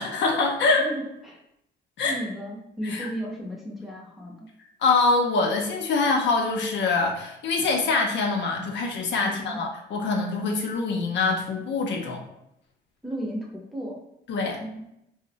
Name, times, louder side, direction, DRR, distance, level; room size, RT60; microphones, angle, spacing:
voice 1, 0.0-0.9 2.0-2.2 2.8-3.1 4.8-12.2 14.3-14.6, left 3 dB, 65° left, 1 dB, 0.5 m, -24 dB
voice 2, 0.8-1.4 2.1-4.5 9.2-9.6 13.0-14.0 14.6-14.9, equal, ahead, -3 dB, 0.6 m, -34 dB
2.5 x 2.0 x 2.9 m, 0.81 s
cardioid pair, 90°, 20 cm